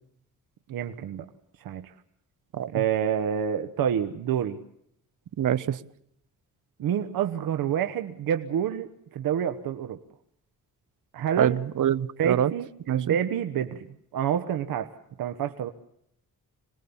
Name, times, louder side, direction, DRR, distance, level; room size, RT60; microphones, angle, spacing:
voice 1, 0.7-1.3 1.6-1.9 2.7-4.6 6.8-10.0 11.1-11.6 12.2-13.9 14.1-14.9 15.2-15.7, right 9 dB, 85° right, 1.2 m, -28 dB
voice 2, 5.4-5.8 11.4-12.5 12.9-13.2, right 10 dB, 65° right, 1.0 m, -25 dB
27.0 x 20.5 x 7.1 m
wide cardioid pair, 140°, 34 cm